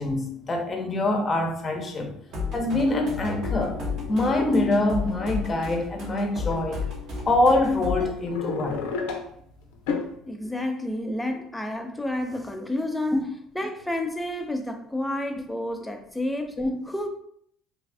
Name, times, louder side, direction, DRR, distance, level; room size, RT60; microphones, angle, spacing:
voice 1, 0.0-2.2 2.5-3.8 4.1-6.8 7.3-8.8 16.6-16.8, left 2 dB, 35° left, 3 dB, 0.8 m, -24 dB
sound 1, 2.3-8.1, left 4 dB, 65° right, 1.2 m, -33 dB
sound 2, 3.4-5.9 6.5-6.7 7.4-7.5 8.0-9.4 9.7-10.1, left 5 dB, 85° left, 0.5 m, -33 dB
voice 2, 10.3-13.2 13.5-16.5 16.9-17.1, left 1 dB, 10° left, 4 dB, 0.6 m, -30 dB
3.3 x 2.4 x 3.4 m, 0.67 s
supercardioid pair, 75°, 0 cm